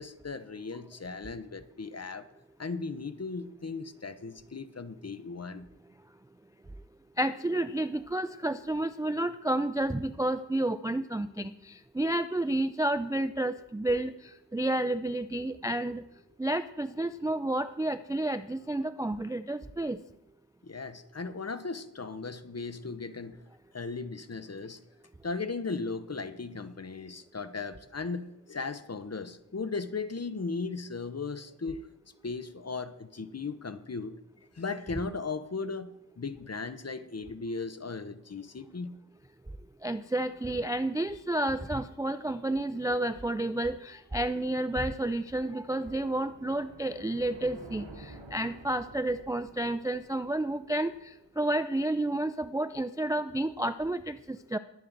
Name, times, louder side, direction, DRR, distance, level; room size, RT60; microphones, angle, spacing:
voice 1, 0.0-2.2 2.6-5.7 20.6-23.4 23.7-24.8 25.2-31.9 32.2-34.2 34.6-38.9, left 4 dB, 35° left, 11 dB, 0.8 m, -37 dB
voice 2, 7.2-14.1 14.5-16.0 16.4-20.0 39.8-50.9 51.4-54.6, right 1 dB, 10° right, 12 dB, 0.3 m, -30 dB
sound 1, 44.0-51.3, right 2 dB, 80° right, 2.2 m, -51 dB
21.0 x 7.4 x 4.0 m, 0.89 s
wide cardioid pair, 60°, 44 cm